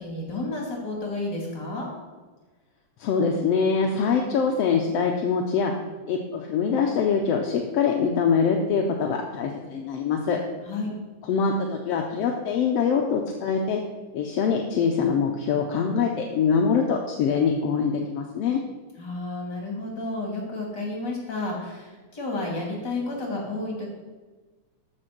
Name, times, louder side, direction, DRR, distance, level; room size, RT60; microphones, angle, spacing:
voice 1, 0.0-1.9 10.6-10.9 19.0-23.9, left 2 dB, 35° left, -2 dB, 3.4 m, -31 dB
voice 2, 3.0-5.7 6.1-10.4 11.3-13.8 14.1-18.6, left 6 dB, 65° left, 2 dB, 1.7 m, -24 dB
14.0 x 5.5 x 6.1 m, 1.3 s
omnidirectional pair, 3.6 m